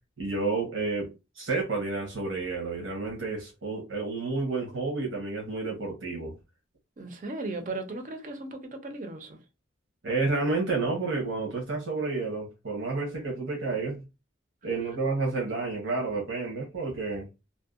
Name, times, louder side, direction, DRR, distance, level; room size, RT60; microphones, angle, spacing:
voice 1, 0.2-6.3 10.0-14.0 14.6-17.3, right 3 dB, 80° right, 0.9 m, -30 dB
voice 2, 7.0-9.4, right 2 dB, 40° right, 0.5 m, -36 dB
2.6 x 2.1 x 2.4 m
head